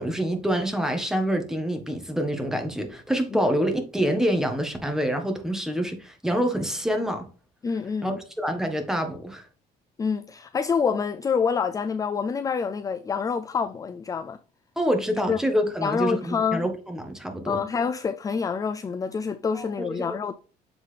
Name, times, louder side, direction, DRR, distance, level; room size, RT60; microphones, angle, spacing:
voice 1, 0.0-7.3 8.0-9.5 14.8-17.6 19.5-20.4, equal, 5° right, 1.4 m, -26 dB
voice 2, 7.6-8.2 10.0-14.4 15.3-15.4 15.8-16.7 17.4-20.4, left 6 dB, 20° left, 0.3 m, -27 dB
7.3 x 4.0 x 3.3 m
cardioid pair, 110°, 17 cm